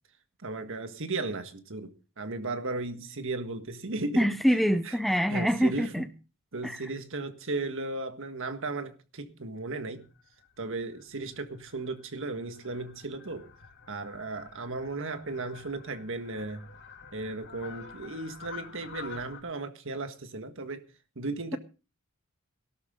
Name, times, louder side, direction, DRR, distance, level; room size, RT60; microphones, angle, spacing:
voice 1, 0.4-4.3 4.8-6.1 6.5-10.1 10.6-13.5 13.9-16.7 17.1-20.8 21.1-21.6, right 3 dB, 60° right, 1.6 m, -35 dB
voice 2, 4.2-6.0 6.6-6.9, equal, ahead, 0.6 m, -25 dB
Fowl, 10.0-19.4, left 5 dB, 55° left, 2.8 m, -49 dB
18.5 x 12.5 x 3.8 m
head